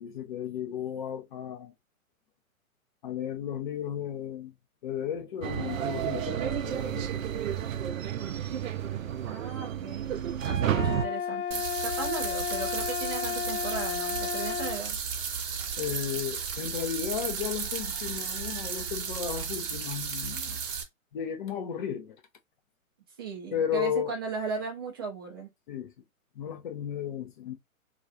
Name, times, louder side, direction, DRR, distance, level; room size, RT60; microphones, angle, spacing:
voice 1, 0.0-1.7 3.0-4.5 4.8-7.2 15.8-20.6 21.1-22.2 23.5-24.1 25.7-25.9 26.3-27.5, left 9 dB, 35° left, 0.6 m, -34 dB
sound 1, 5.4-11.1, right 9 dB, 65° right, 0.5 m, -31 dB
voice 2, 9.3-15.0 23.2-25.5, right 4 dB, 20° right, 0.4 m, -37 dB
sound 2, 10.7-14.8, left 8 dB, 90° left, 0.6 m, -33 dB
sound 3, 11.5-20.8, right 6 dB, 40° right, 0.8 m, -34 dB
2.4 x 2.3 x 2.6 m
figure-of-eight pair, 125°, 42 cm